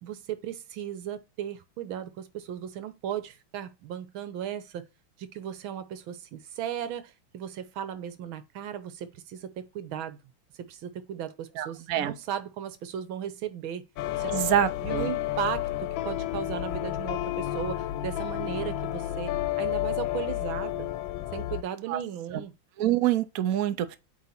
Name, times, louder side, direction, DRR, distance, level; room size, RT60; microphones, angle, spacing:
voice 1, 0.0-4.8 5.2-10.2 10.6-13.9 14.2-14.4 14.8-20.9 21.3-22.5, right 9 dB, 80° right, 1.7 m, -36 dB
voice 2, 11.6-12.1 14.3-15.1 21.9-22.0 22.3-22.4 22.8-24.0, right 11 dB, 65° right, 0.9 m, -26 dB
sound 1, 14.0-21.6, left 13 dB, 75° left, 1.3 m, -31 dB
8.9 x 3.4 x 4.3 m
omnidirectional pair, 2.2 m